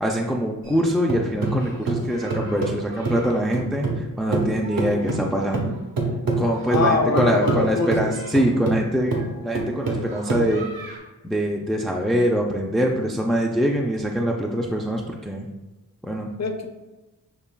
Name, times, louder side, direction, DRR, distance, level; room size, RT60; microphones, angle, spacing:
voice 1, 0.0-5.7 6.4-9.2 9.4-10.7 11.2-15.5 16.0-16.3, equal, ahead, -1 dB, 0.4 m, -23 dB
sound 1, 0.6-4.1 4.3-11.0, right 3 dB, 75° right, 1.0 m, -26 dB
voice 2, 6.7-8.0 16.4-16.7, left 3 dB, 50° left, 4 dB, 0.6 m, -23 dB
6.9 x 3.0 x 2.2 m, 1.1 s
wide cardioid pair, 85°, 35 cm